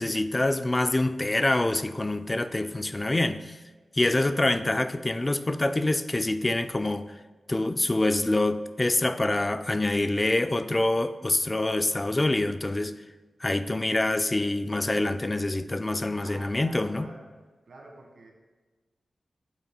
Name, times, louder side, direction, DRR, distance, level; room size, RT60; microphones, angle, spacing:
voice 1, 0.0-3.6 4.0-7.1 7.5-12.9 13.4-17.1, left 2 dB, 20° left, 0.3 m, -26 dB
voice 2, 16.2-17.3 17.7-18.3, right 2 dB, 80° right, 1.4 m, -47 dB
9.0 x 8.1 x 2.2 m
wide cardioid pair, 120°, 0 cm